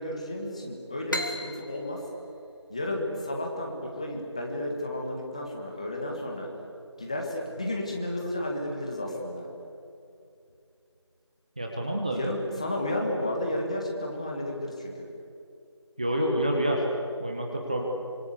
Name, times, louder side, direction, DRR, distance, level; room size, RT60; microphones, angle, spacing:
voice 1, 0.0-2.0 2.7-6.5 7.0-9.5 12.1-15.1, left 1 dB, 15° left, 0 dB, 1.7 m, -32 dB
sound 1, 1.1-4.5, left 1 dB, 45° left, 2.3 m, -37 dB
voice 2, 11.6-12.2 16.0-16.9 17.2-17.8, right 1 dB, 15° right, 0 dB, 1.2 m, -27 dB
25.5 x 25.5 x 8.3 m, 2.6 s
figure-of-eight pair, 175°, 15 cm